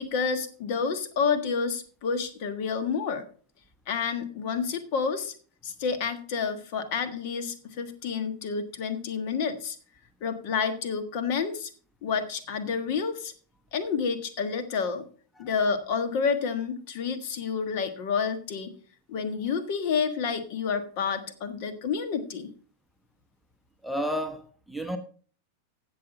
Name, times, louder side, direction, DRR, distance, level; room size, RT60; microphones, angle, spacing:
voice 1, 0.0-3.2 3.9-5.3 5.6-9.8 10.2-11.7 12.0-13.3 13.7-15.0 15.4-18.7 19.1-22.5, left 5 dB, 45° left, 1.5 m, -29 dB
voice 2, 23.8-25.0, equal, ahead, 1.1 m, -32 dB
16.5 x 6.2 x 4.0 m
figure-of-eight pair, 90°, 0 cm